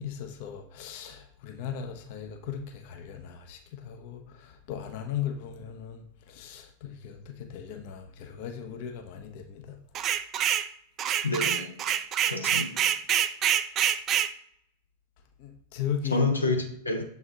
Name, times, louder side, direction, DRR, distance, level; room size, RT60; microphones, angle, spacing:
voice 1, 0.0-9.8 15.4-16.3, left 8 dB, 50° left, 0.7 m, -37 dB
sound 1, 9.9-10.7 11.0-14.3, right 10 dB, 30° right, 0.3 m, -26 dB
voice 2, 11.2-11.7 12.3-12.9 16.1-17.0, left 3 dB, 80° left, 0.7 m, -28 dB
6.9 x 4.2 x 3.7 m
figure-of-eight pair, 90°, 0 cm